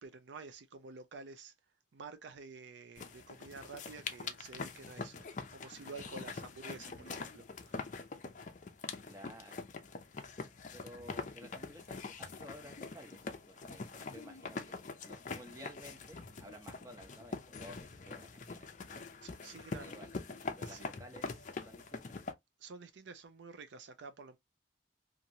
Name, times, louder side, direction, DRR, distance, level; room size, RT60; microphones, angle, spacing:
voice 1, 0.0-1.5 1.9-5.2 5.5-8.0 19.2-20.0 20.7-20.9 22.6-24.4, right 4 dB, 70° right, 0.4 m, -50 dB
sound 1, 3.0-22.3, left 4 dB, 40° left, 0.5 m, -44 dB
voice 2, 9.1-9.6 10.7-18.7 19.4-20.2 20.6-22.2, equal, 15° right, 0.8 m, -54 dB
2.9 x 2.5 x 2.7 m
head